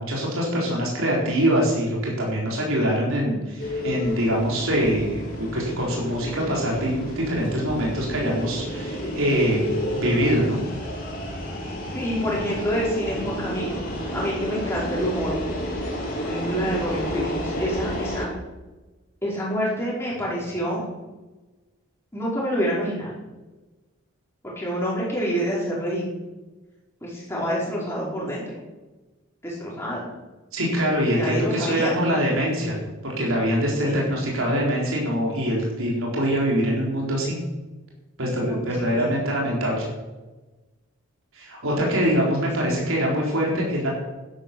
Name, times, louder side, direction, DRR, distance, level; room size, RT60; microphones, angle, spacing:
voice 1, 0.0-10.6 30.5-32.8 33.0-37.3 38.2-39.9 41.3-43.9, equal, 75° right, -3 dB, 4.3 m, -24 dB
sound 1, 3.6-18.3, equal, 40° left, 3.8 m, -31 dB
voice 2, 11.9-13.8 14.1-15.3 16.2-18.3 19.2-20.8 22.1-23.1 24.4-26.1 27.0-28.5 29.4-30.0 31.1-32.0 33.8-34.0 38.4-39.1 42.7-42.9, equal, 10° left, -5 dB, 4.8 m, -27 dB
12.0 x 10.5 x 6.9 m, 1.2 s
head